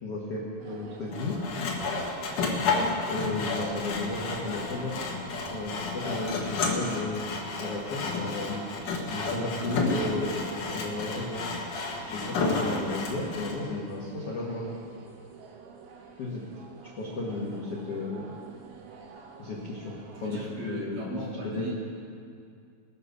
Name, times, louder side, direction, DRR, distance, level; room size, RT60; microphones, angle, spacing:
voice 1, 0.0-1.4 3.1-5.0 5.5-7.2 7.6-11.5 12.1-14.7 16.2-16.4 17.0-18.3 19.4-19.9 20.2-21.2 21.5-21.7, left 2 dB, 80° left, -4 dB, 1.3 m, -33 dB
sound 1, 0.6-20.3, right 5 dB, 80° right, 3.6 m, -48 dB
Sawing, 1.1-13.6, left 3 dB, 60° left, 2.4 m, -31 dB
voice 2, 20.1-21.7, right 1 dB, 55° right, -5 dB, 3.2 m, -37 dB
20.5 x 7.0 x 6.8 m, 2.3 s
omnidirectional pair, 5.5 m